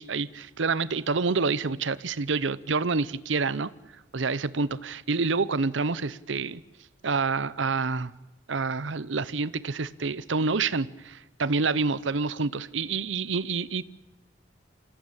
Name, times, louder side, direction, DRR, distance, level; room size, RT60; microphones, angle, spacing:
voice 1, 0.0-3.7 4.1-6.6 7.0-8.1 8.5-13.8, right 4 dB, 70° right, 18 dB, 0.8 m, -27 dB
27.0 x 16.5 x 8.9 m, 1.0 s
head